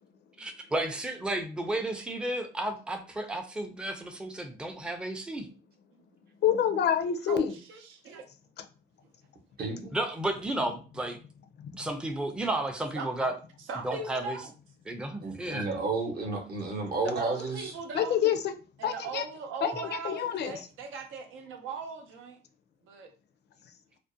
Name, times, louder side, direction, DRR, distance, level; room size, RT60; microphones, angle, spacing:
voice 1, 0.4-5.5 9.9-11.2 11.7-13.3 13.8-14.4 14.9-15.7, right 1 dB, 5° right, 0.4 m, -32 dB
voice 2, 6.4-7.5 11.6-11.7 17.9-18.5 18.8-19.2 19.6-20.6, left 9 dB, 60° left, 0.4 m, -27 dB
voice 3, 7.3-8.3 12.9-13.1 13.7-14.5 17.0-18.2 18.8-22.4 22.8-23.1, right 4 dB, 85° right, 0.5 m, -39 dB
voice 4, 9.6-9.9 15.2-17.7, right 3 dB, 50° right, 0.8 m, -32 dB
2.4 x 2.1 x 2.6 m
cardioid pair, 90°, 20 cm